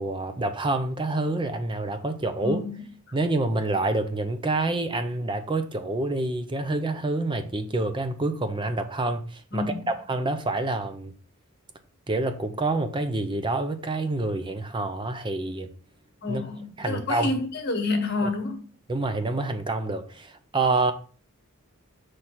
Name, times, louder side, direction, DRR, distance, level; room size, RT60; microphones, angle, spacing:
voice 1, 0.0-2.6 3.1-11.1 12.1-15.7 16.3-16.4 16.8-17.3 18.2-18.3 18.9-20.9, right 2 dB, 25° right, 0.5 m, -27 dB
voice 2, 2.4-3.2 9.5-9.9 16.2-18.6, left 3 dB, 50° left, 1.4 m, -29 dB
5.9 x 3.3 x 5.6 m
head